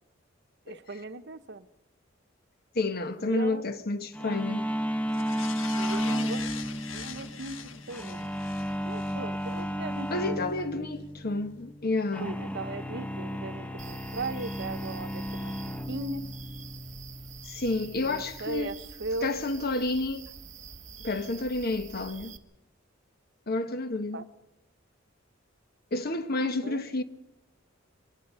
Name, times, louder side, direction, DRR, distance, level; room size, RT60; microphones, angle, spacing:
voice 1, 0.7-1.6 3.2-3.7 5.8-6.4 6.9-8.3 8.8-10.8 12.2-16.3 18.0-19.4 24.1-24.2 26.6-26.8, right 2 dB, 60° right, 1.0 m, -38 dB
voice 2, 2.7-4.7 10.1-12.4 17.4-18.7 19.2-20.3 21.0-22.3 23.5-24.3 25.9-27.0, left 2 dB, 50° left, 1.2 m, -30 dB
sound 1, 4.1-18.6, equal, 5° left, 0.8 m, -34 dB
sound 2, 5.1-9.6 10.0-10.1, left 7 dB, 80° left, 1.4 m, -42 dB
sound 3, 13.8-22.4, right 6 dB, 40° right, 1.2 m, -46 dB
24.0 x 19.5 x 5.6 m
head